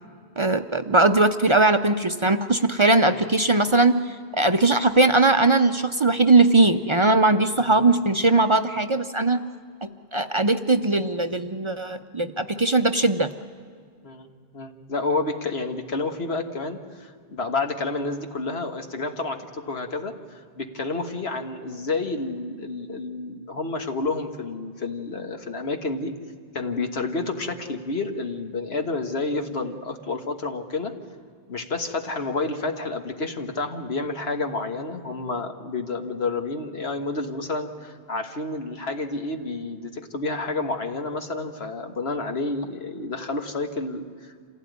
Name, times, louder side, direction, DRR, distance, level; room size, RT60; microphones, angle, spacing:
voice 1, 0.4-9.4 9.8-13.3, right 2 dB, 35° right, 8 dB, 0.6 m, -20 dB
voice 2, 14.5-26.1 26.5-30.9 31.5-44.5, left 3 dB, 85° left, 5 dB, 1.8 m, -30 dB
26.5 x 16.0 x 9.4 m, 2.1 s
omnidirectional pair, 1.0 m